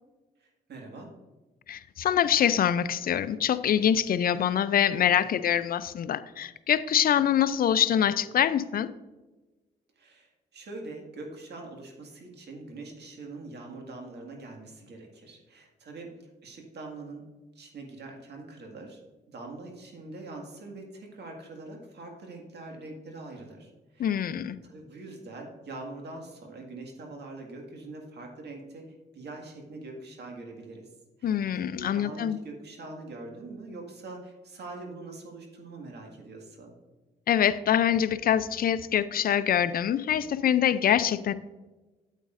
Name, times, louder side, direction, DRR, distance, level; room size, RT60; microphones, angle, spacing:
voice 1, 0.4-1.1 10.0-16.1 16.4-17.2 17.6-19.0 19.3-24.2 24.6-28.8 29.1-30.9 31.2-36.7, right 2 dB, 65° right, 2 dB, 1.9 m, -43 dB
voice 2, 1.7-8.9 24.0-24.6 31.2-32.4 37.3-41.3, left 9 dB, 55° left, 14 dB, 0.5 m, -25 dB
9.0 x 8.2 x 2.5 m, 1.2 s
supercardioid pair, 65°, 19 cm